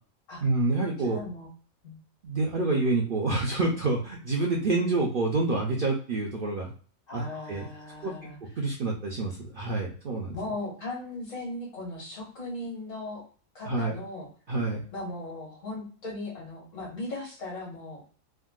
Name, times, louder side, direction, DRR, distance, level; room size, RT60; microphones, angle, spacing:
voice 1, 0.4-1.2 2.2-6.7 7.1-7.2 7.5-7.7 8.0-8.1 8.6-10.4 13.6-14.0 14.5-14.8, right 3 dB, 55° right, -1 dB, 0.6 m, -27 dB
voice 2, 1.0-1.5 1.8-2.0 7.1-8.4 10.3-13.2 13.6-14.3 14.9-18.0, left 2 dB, 65° left, -3 dB, 1.8 m, -38 dB
3.5 x 2.2 x 2.3 m, 0.41 s
omnidirectional pair, 1.4 m